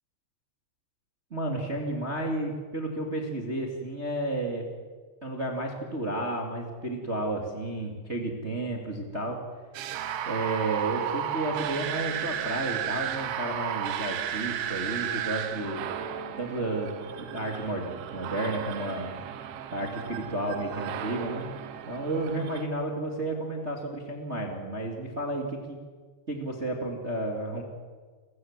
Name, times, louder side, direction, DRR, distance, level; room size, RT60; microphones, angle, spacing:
voice 1, 1.3-4.7 5.2-9.4 10.2-15.9 16.4-19.2 19.7-21.5 21.9-25.8 26.3-27.6, right 1 dB, 25° right, 2 dB, 1.4 m, -32 dB
sound 1, 9.7-22.6, right 10 dB, 85° right, 3.7 m, -34 dB
29.0 x 16.0 x 7.4 m, 1.5 s
omnidirectional pair, 5.3 m